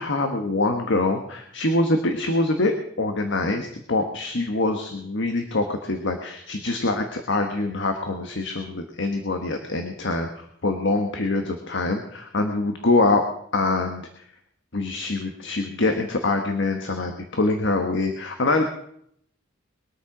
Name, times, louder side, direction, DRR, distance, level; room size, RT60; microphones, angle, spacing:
voice 1, 0.0-10.3 10.6-13.2 13.5-14.1 14.7-18.7, left 2 dB, 65° left, 5 dB, 1.5 m, -24 dB
22.0 x 8.7 x 6.1 m, 0.69 s
head